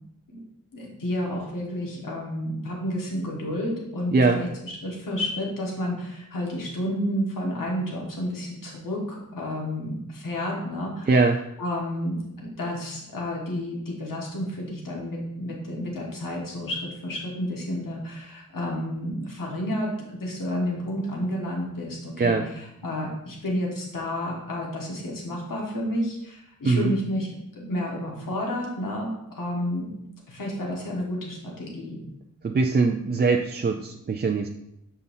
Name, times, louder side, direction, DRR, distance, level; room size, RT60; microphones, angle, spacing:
voice 1, 0.7-11.1 11.6-27.3 27.5-29.9 30.3-32.0, left 1 dB, 75° left, -2 dB, 1.5 m, -31 dB
voice 2, 11.1-11.4 22.2-22.5 26.6-26.9 32.4-34.5, right 4 dB, 30° right, 2 dB, 0.4 m, -22 dB
7.0 x 5.5 x 2.7 m, 0.81 s
wide cardioid pair, 120°, 33 cm